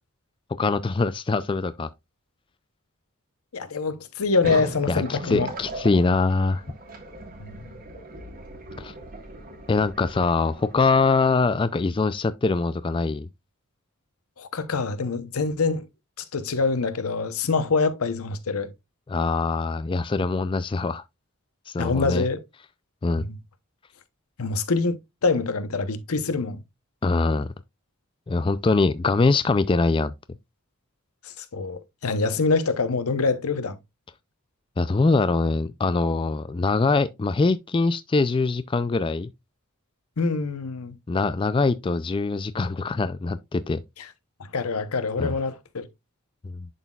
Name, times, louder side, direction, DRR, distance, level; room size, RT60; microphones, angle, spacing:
voice 1, 0.5-1.9 4.9-6.6 8.8-8.9 9.7-13.3 19.1-21.0 21.7-22.3 23.0-23.2 27.0-27.5 28.3-30.1 34.8-39.3 41.1-43.8 45.2-45.3 46.4-46.7, left 3 dB, 25° left, 0.3 m, -23 dB
voice 2, 3.5-5.5 7.4-7.8 14.4-15.9 16.2-18.7 21.8-22.4 23.2-23.4 24.4-25.0 25.2-26.6 31.4-33.8 40.2-41.0 44.5-45.9, left 4 dB, 85° left, 0.8 m, -25 dB
sound 1, 4.4-11.6, right 1 dB, 40° right, 1.5 m, -38 dB
11.0 x 4.0 x 2.3 m
head